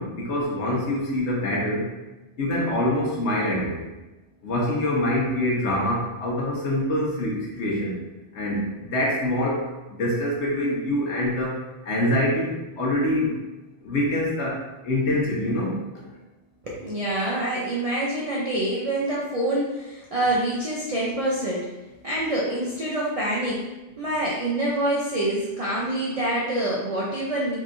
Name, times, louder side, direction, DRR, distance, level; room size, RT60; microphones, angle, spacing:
voice 1, 0.0-1.9 2.4-3.8 4.4-8.0 8.3-13.4 13.8-14.6 14.8-15.8, left 1 dB, 75° left, -4 dB, 1.1 m, -25 dB
voice 2, 16.6-21.7 22.0-23.7 24.0-27.6, right 1 dB, 50° right, -5 dB, 0.4 m, -26 dB
3.6 x 3.1 x 2.5 m, 1.1 s
omnidirectional pair, 1.2 m